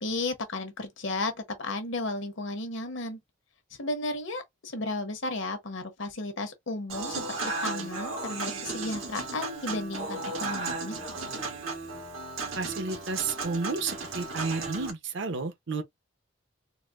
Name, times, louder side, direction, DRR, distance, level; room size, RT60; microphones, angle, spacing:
voice 1, 0.0-3.2 3.8-11.0, left 2 dB, 65° left, 1.0 m, -34 dB
Human voice / Acoustic guitar / Piano, 6.9-14.9, right 3 dB, 85° right, 1.3 m, -35 dB
voice 2, 12.6-15.8, right 4 dB, 65° right, 0.8 m, -32 dB
4.0 x 2.1 x 2.4 m
head